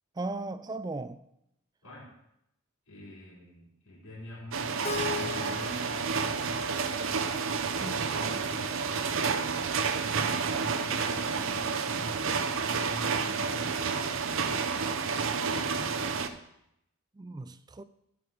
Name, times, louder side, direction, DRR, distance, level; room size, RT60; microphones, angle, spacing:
voice 1, 0.2-1.2 7.8-8.0 17.1-17.8, right 2 dB, 20° right, 0.3 m, -37 dB
voice 2, 2.9-6.6 7.8-9.2 9.6-9.9 10.3-13.7 15.7-16.4, left 1 dB, 90° left, 4.1 m, -46 dB
sound 1, 4.5-16.3, right 5 dB, 65° right, 0.7 m, -30 dB
Keyboard (musical), 4.8-7.8, left 5 dB, 30° left, 0.8 m, -39 dB
12.5 x 5.1 x 6.3 m
head